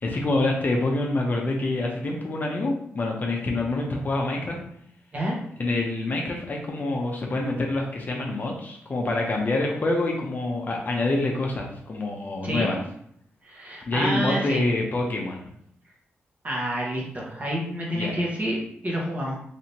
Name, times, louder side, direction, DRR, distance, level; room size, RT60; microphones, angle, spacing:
voice 1, 0.0-4.6 5.6-12.8 13.9-15.4 17.9-18.2, left 2 dB, 40° left, 0 dB, 0.6 m, -26 dB
voice 2, 12.4-12.8 13.4-14.6 16.4-18.5 18.8-19.4, equal, 35° right, -3 dB, 1.1 m, -28 dB
3.3 x 2.8 x 2.7 m, 0.69 s
cardioid pair, 100°, 5 cm